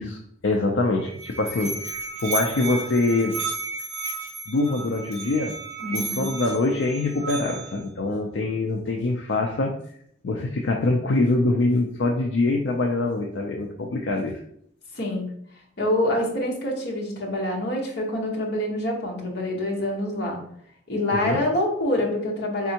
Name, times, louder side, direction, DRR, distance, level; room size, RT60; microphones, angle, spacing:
voice 1, 0.0-3.4 4.5-5.5 5.9-9.7 10.2-14.4 21.1-21.4, left 2 dB, 70° left, 1 dB, 0.5 m, -24 dB
Musical instrument, 0.9-7.8, right 3 dB, 35° right, 0.9 m, -33 dB
voice 2, 5.8-6.3 14.9-15.3 15.8-20.4 20.9-22.7, left 1 dB, 55° left, -1 dB, 1.0 m, -26 dB
4.3 x 3.5 x 2.8 m, 0.68 s
head